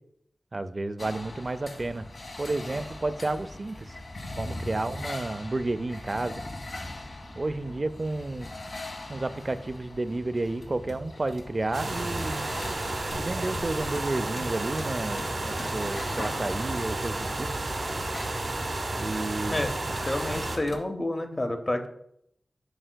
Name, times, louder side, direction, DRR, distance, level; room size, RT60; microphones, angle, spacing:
voice 1, 0.5-2.1 2.4-4.0 4.4-6.4 7.4-8.5 9.1-12.5 13.2-17.5 19.0-19.6, right 2 dB, 45° right, 13 dB, 0.3 m, -31 dB
sound 1, 1.0-20.8, left 1 dB, 75° left, 1.0 m, -41 dB
sound 2, 11.7-20.6, right 2 dB, 65° right, 0.9 m, -32 dB
voice 2, 20.1-21.9, left 1 dB, 30° left, 6 dB, 0.7 m, -29 dB
7.7 x 5.5 x 2.2 m, 0.74 s
wide cardioid pair, 70°, 0 cm